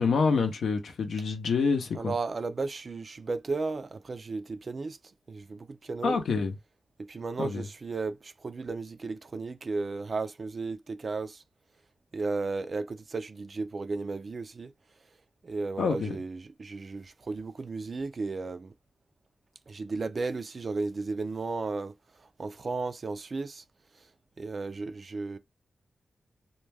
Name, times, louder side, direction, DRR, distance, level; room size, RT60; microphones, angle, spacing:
voice 1, 0.0-2.1 6.0-6.5 7.4-7.7 15.8-16.2, left 5 dB, 90° left, 0.6 m, -27 dB
voice 2, 1.9-5.0 5.3-6.2 7.0-11.4 12.1-14.7 15.4-18.7 19.7-21.9 22.4-23.6 24.4-25.4, right 3 dB, 50° right, 0.3 m, -34 dB
2.2 x 2.2 x 3.3 m
cardioid pair, 70°, 0 cm